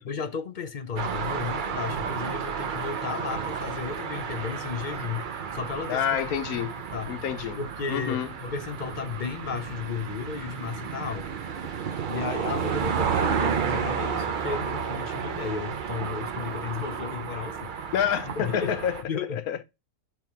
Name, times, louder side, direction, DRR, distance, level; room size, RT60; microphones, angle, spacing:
voice 1, 0.0-6.0 6.6-7.1 7.6-11.3 12.1-17.7 18.4-18.7 19.1-19.4, left 6 dB, 50° left, 0.6 m, -34 dB
sound 1, 1.0-19.0, right 7 dB, 50° right, 0.6 m, -32 dB
voice 2, 5.9-6.7 7.1-7.6 7.9-8.3 17.9-19.0 19.3-19.6, left 9 dB, 85° left, 1.2 m, -28 dB
5.6 x 4.7 x 4.5 m
omnidirectional pair, 1.5 m